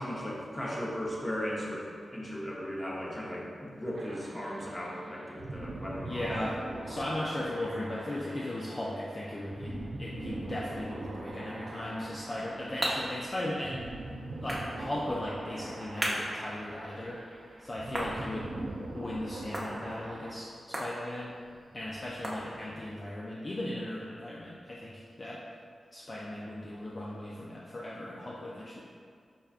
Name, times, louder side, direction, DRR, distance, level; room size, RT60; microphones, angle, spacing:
voice 1, 0.0-6.3, equal, 25° left, -4 dB, 0.8 m, -37 dB
sound 1, 4.0-20.3, right 2 dB, 55° right, 0.4 m, -42 dB
voice 2, 6.0-13.9 14.4-17.2 17.6-21.3 21.7-25.4 25.9-28.8, left 1 dB, 40° left, -5 dB, 0.4 m, -37 dB
sound 2, 12.1-23.0, equal, 20° right, 0.8 m, -40 dB
5.3 x 2.2 x 2.4 m, 2.2 s
cardioid pair, 50°, 0 cm